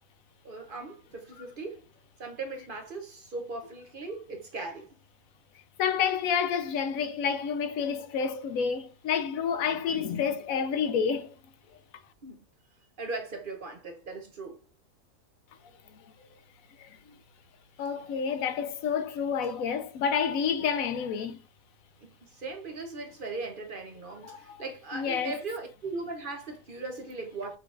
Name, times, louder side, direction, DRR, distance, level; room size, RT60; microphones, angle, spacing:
voice 1, 0.4-1.9 2.2-4.9 12.2-12.4 13.0-14.6 22.0-27.6, right 3 dB, 50° right, 0.7 m, -38 dB
voice 2, 5.8-11.3 16.8-16.9 17.8-21.4 24.2-24.6 24.9-25.4, left 7 dB, 85° left, 1.1 m, -29 dB
6.0 x 3.5 x 2.4 m
omnidirectional pair, 1.4 m